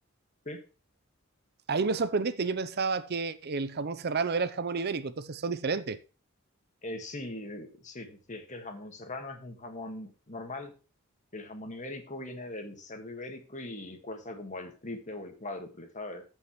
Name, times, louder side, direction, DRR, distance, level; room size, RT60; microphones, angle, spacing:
voice 1, 1.7-6.0, right 4 dB, 50° right, 0.6 m, -30 dB
voice 2, 6.8-10.7 11.3-16.2, left 2 dB, 35° left, 1.7 m, -40 dB
14.5 x 5.5 x 3.1 m
head